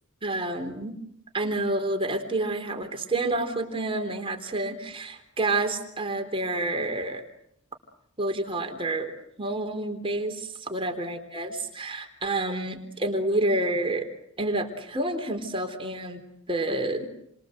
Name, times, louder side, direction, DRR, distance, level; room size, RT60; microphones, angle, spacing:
voice 1, 0.2-1.0 1.3-7.2 8.2-9.1 9.4-14.1 14.4-17.1, right 2 dB, 25° right, 4 dB, 3.7 m, -29 dB
30.0 x 25.0 x 7.9 m, 0.75 s
head